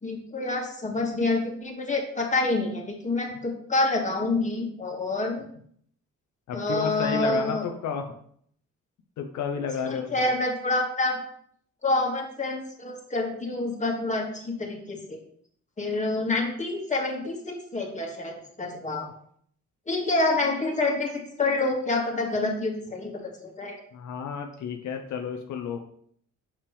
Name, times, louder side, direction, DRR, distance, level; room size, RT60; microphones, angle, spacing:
voice 1, 0.0-5.4 6.5-7.6 9.8-11.2 11.8-15.2 15.8-19.1 19.9-23.8, left 2 dB, 25° left, -1 dB, 2.0 m, -27 dB
voice 2, 6.5-8.1 9.2-10.3 23.9-25.8, left 6 dB, 70° left, 4 dB, 0.8 m, -32 dB
6.7 x 5.9 x 3.3 m, 0.63 s
cardioid pair, 90°, 30 cm